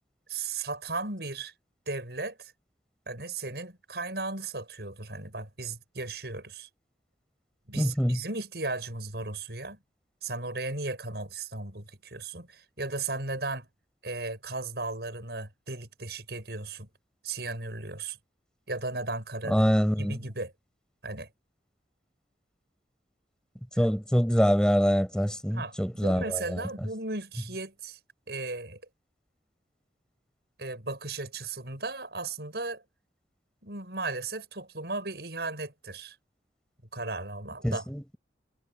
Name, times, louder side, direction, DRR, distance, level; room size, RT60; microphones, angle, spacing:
voice 1, 0.3-1.5 1.9-2.5 3.1-6.7 7.7-9.8 10.2-13.7 14.0-16.9 17.2-18.2 18.7-19.7 20.0-20.5 21.0-21.3 23.7-23.8 25.5-28.0 28.3-28.8 30.6-32.8 33.6-36.2 36.9-37.9, right 3 dB, 70° right, 6.3 m, -36 dB
voice 2, 7.7-8.2 19.5-20.2 23.8-26.2 37.6-38.2, equal, 5° left, 5.7 m, -24 dB
head